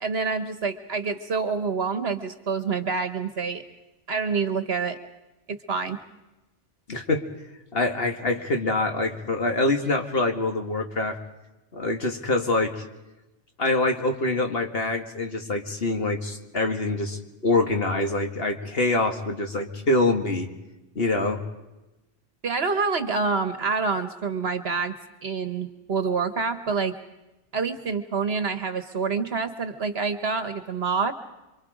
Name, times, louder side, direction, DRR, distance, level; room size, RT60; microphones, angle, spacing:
voice 1, 0.0-3.6 4.1-5.0 5.5-6.0 22.4-25.0 25.2-27.0 27.5-31.1, right 5 dB, 60° right, 10 dB, 1.4 m, -27 dB
voice 2, 6.9-7.2 7.7-11.2 11.7-12.8 13.6-20.5 21.0-21.4, left 2 dB, 55° left, 4 dB, 2.2 m, -25 dB
28.0 x 24.5 x 5.0 m, 1.0 s
omnidirectional pair, 1.2 m